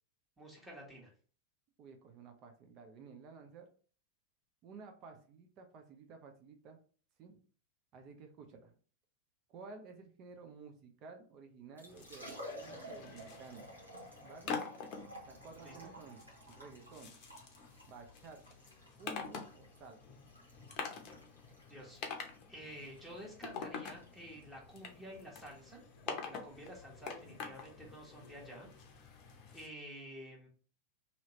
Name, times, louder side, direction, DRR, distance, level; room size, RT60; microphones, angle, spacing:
voice 1, 0.4-1.1 15.6-15.9 21.7-22.0 22.5-28.7 29.5-30.5, right 1 dB, 10° right, -3 dB, 1.1 m, -50 dB
voice 2, 1.8-3.7 4.6-6.8 7.2-7.4 7.9-8.7 9.5-13.7 14.2-14.6 15.2-17.1 17.9-18.6 19.0-20.2, right 4 dB, 35° right, 5 dB, 0.5 m, -53 dB
Liquid, 11.6-28.9, equal, 80° right, 1.0 m, -54 dB
sound 1, 11.9-29.7, left 6 dB, 40° left, 0.6 m, -47 dB
2.8 x 2.8 x 2.9 m, 0.42 s
figure-of-eight pair, 90°, 0 cm